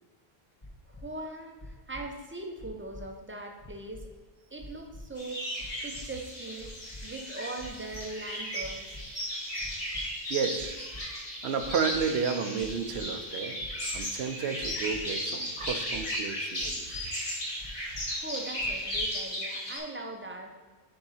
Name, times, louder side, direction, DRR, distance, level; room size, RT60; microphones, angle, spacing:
sound 1, 0.6-1.0 1.6-2.0 2.6-3.0 3.6-4.0 4.6-5.0 5.6-6.0 6.6-7.0 7.6-8.0 8.6-9.0 9.6-10.0 10.6-11.0 11.6-12.0 12.6-13.0 13.6-14.0 14.6-15.0 15.6-16.0 16.6-17.0 17.6-18.0 18.6-19.0, left 1 dB, 25° left, 0.9 m, -45 dB
voice 1, 0.9-4.1 4.5-5.5 5.8-6.7 7.0-8.8 18.2-20.5, right 2 dB, 15° right, 3 dB, 0.6 m, -40 dB
sound 2, 5.2-19.8, equal, 40° left, 1.8 m, -35 dB
voice 2, 10.3-10.8 11.4-13.6 13.9-16.9, right 6 dB, 85° right, 8 dB, 0.9 m, -31 dB
7.0 x 3.8 x 5.6 m, 1.3 s
omnidirectional pair, 1.0 m